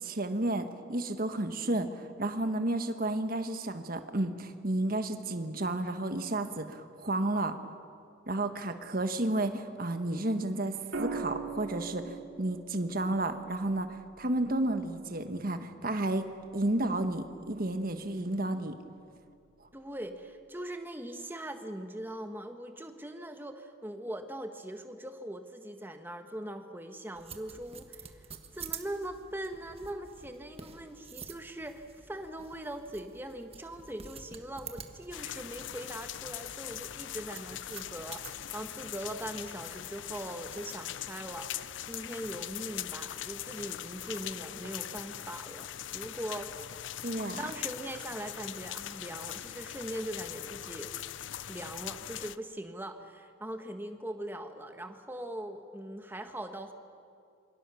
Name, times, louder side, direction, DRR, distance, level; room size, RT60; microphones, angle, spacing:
voice 1, 0.0-7.6 8.3-18.8 47.0-47.4, right 1 dB, 45° right, 8 dB, 1.4 m, -32 dB
sound 1, 10.9-15.1 16.8-17.1, right 4 dB, 80° right, 2.6 m, -41 dB
voice 2, 19.7-28.2 28.5-46.9 47.4-50.9 51.5-56.7, right 1 dB, 10° right, 6 dB, 1.4 m, -41 dB
sound 2, 27.2-38.6, right 6 dB, 30° right, 1.4 m, -49 dB
sound 3, 35.1-52.4, left 11 dB, 70° left, 0.5 m, -41 dB
27.0 x 24.0 x 7.0 m, 2.4 s
head